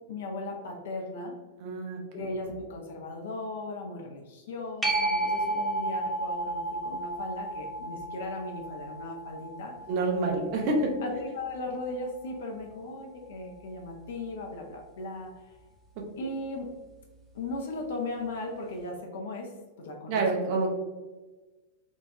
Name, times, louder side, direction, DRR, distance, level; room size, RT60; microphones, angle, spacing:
voice 1, 0.1-1.3 2.1-9.7 10.6-10.8 11.0-15.6 16.2-16.7 17.3-19.5 19.8-20.2 20.5-20.7, left 2 dB, 60° left, 1 dB, 0.6 m, -37 dB
voice 2, 1.6-2.3 9.9-10.9 20.1-20.7, right 2 dB, 45° right, 1 dB, 0.8 m, -28 dB
sound 1, 4.8-12.0 17.5-17.6, right 2 dB, 10° right, 0.7 m, -33 dB
4.3 x 2.4 x 2.8 m, 1.2 s
figure-of-eight pair, 90°, 0 cm